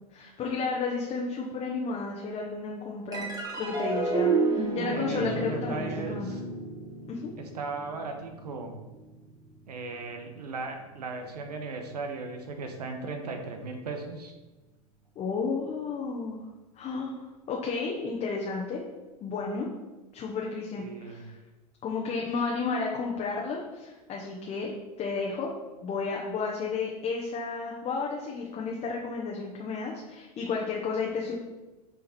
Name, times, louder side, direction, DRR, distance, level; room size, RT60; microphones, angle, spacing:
voice 1, 0.1-3.3 3.6-6.3 7.1-7.3 15.2-16.4 16.8-17.1 17.5-18.8 19.2-19.7 20.1-21.4 21.8-25.5 25.8-31.3, left 4 dB, 30° left, -2 dB, 1.0 m, -32 dB
sound 1, 3.1-9.8, right 3 dB, 20° right, 1.7 m, -31 dB
voice 2, 4.9-6.4 7.4-8.8 9.7-14.3 20.7-21.3, right 3 dB, 85° right, 5 dB, 1.1 m, -37 dB
6.9 x 3.8 x 4.3 m, 1.1 s
hypercardioid pair, 105°, 20 cm